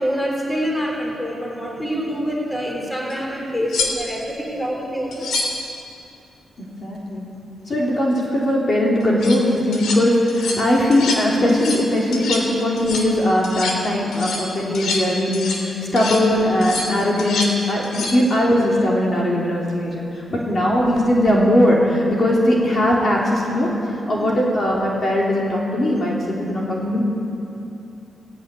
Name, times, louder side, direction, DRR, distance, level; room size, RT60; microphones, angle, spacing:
voice 1, 0.0-5.3 24.1-24.3, equal, 10° left, -1 dB, 3.5 m, -26 dB
sound 1, 3.1-3.2 3.7-4.3 5.1-5.6 9.0-9.4 9.7-10.0 10.3-10.6 10.9-11.2 11.5-11.9 12.1-12.5 12.8-13.1 13.4-13.8 14.1-15.7 16.0-16.2 16.6-17.6 17.8-18.2 20.8-21.0, left 3 dB, 85° left, 3.3 m, -27 dB
voice 2, 6.6-7.3 7.7-23.7 24.1-27.0, left 1 dB, 30° left, -4 dB, 3.3 m, -19 dB
16.5 x 16.5 x 9.6 m, 2.7 s
wide cardioid pair, 180°, 0 cm